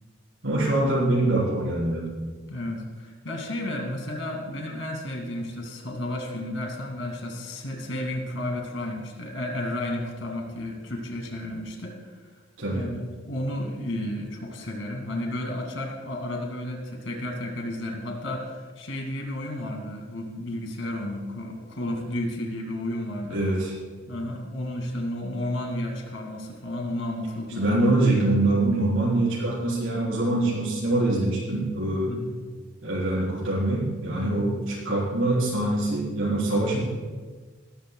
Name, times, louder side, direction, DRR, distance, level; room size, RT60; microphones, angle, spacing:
voice 1, 0.4-2.0 12.6-12.9 23.3-23.7 27.6-32.1 32.8-36.8, right 2 dB, 90° right, -7 dB, 4.2 m, -24 dB
voice 2, 2.5-12.1 12.7-23.4 24.1-28.0 32.1-32.3 34.2-34.5, left 1 dB, 75° left, 2 dB, 2.4 m, -32 dB
19.0 x 13.0 x 2.3 m, 1.4 s
head